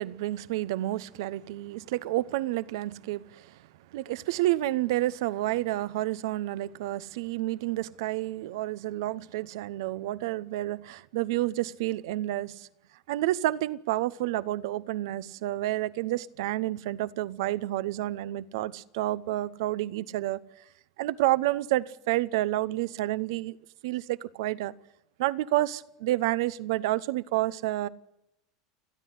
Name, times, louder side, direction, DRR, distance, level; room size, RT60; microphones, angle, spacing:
voice 1, 0.0-3.6 3.9-12.7 13.1-20.4 21.0-23.6 23.8-24.7 25.2-27.9, right 16 dB, 75° right, 0.9 m, -29 dB
30.0 x 10.0 x 9.7 m
hypercardioid pair, 100°, 2 cm